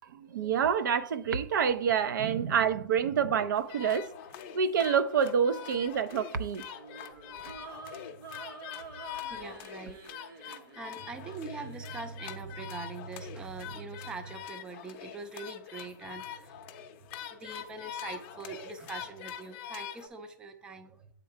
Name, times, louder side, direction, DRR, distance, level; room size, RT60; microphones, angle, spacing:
voice 1, 0.3-4.1 4.5-6.6, right 7 dB, 65° right, 0.6 m, -27 dB
sound 1, 3.6-20.1, left 9 dB, 35° left, 0.6 m, -44 dB
sound 2, 6.7-12.0, right 4 dB, 85° right, 1.5 m, -49 dB
voice 2, 9.3-10.0 10.4-16.6 17.3-21.1, right 4 dB, 10° right, 0.4 m, -42 dB
7.2 x 3.8 x 4.5 m
hypercardioid pair, 150°, 11 cm